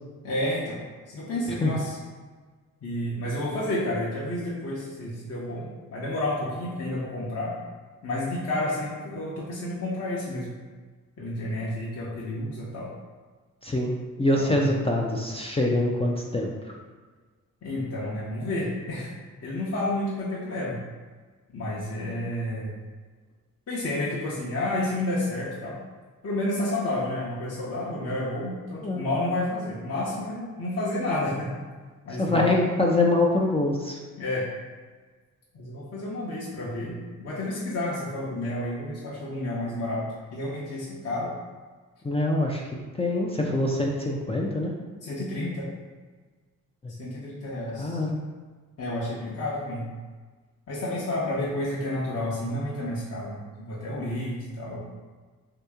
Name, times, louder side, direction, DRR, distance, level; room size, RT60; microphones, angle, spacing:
voice 1, 0.2-0.8 1.1-2.0 2.8-7.6 8.0-10.5 11.2-12.9 14.4-14.8 17.6-19.1 19.4-20.8 21.5-22.7 23.7-25.8 26.2-31.5 32.0-32.6 34.2-34.5 35.5-40.1 40.3-41.3 45.0-45.7 47.0-48.0 48.8-49.9 50.7-54.8, left 1 dB, 45° left, -6 dB, 0.9 m, -30 dB
voice 2, 13.6-16.7 28.8-29.1 32.2-34.0 42.0-42.6 42.9-44.7 46.8-46.9 47.8-48.2, left 2 dB, 15° left, -2 dB, 0.4 m, -24 dB
2.9 x 2.7 x 3.5 m, 1.4 s
supercardioid pair, 60°, 35 cm